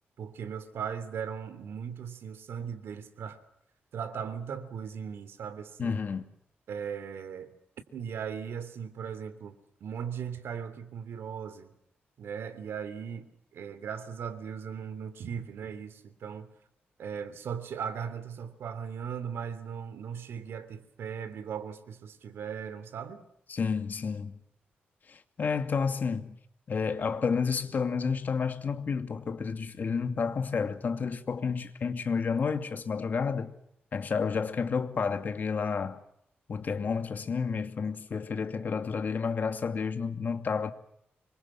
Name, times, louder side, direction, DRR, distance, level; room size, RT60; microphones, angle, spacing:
voice 1, 0.2-3.4 3.9-6.0 6.7-7.5 7.9-9.5 9.8-11.7 12.2-13.3 13.5-16.5 17.0-23.2, right 7 dB, 80° right, 3.1 m, -38 dB
voice 2, 5.8-6.3 23.5-24.4 25.1-26.4 26.7-33.5 33.9-36.0 36.5-40.7, left 5 dB, 50° left, 2.5 m, -30 dB
26.0 x 23.5 x 7.3 m
cardioid pair, 105°, 4 cm